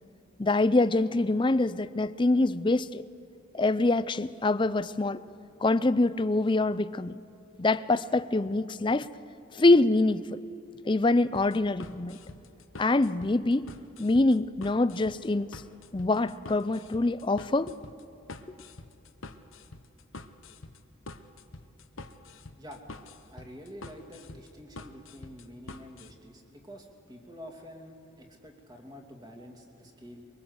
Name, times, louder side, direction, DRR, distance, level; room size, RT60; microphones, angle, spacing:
voice 1, 0.4-3.0 3.5-5.2 5.6-7.2 7.6-9.1 9.5-10.4 10.9-12.2 12.8-13.7 14.0-15.6 15.9-17.7, left 2 dB, 20° left, 15 dB, 0.4 m, -25 dB
sound 1, 11.3-26.1, left 3 dB, 70° left, 1.0 m, -47 dB
voice 2, 23.3-30.3, equal, 20° right, 2 dB, 2.5 m, -47 dB
23.5 x 22.5 x 8.0 m, 2.9 s
head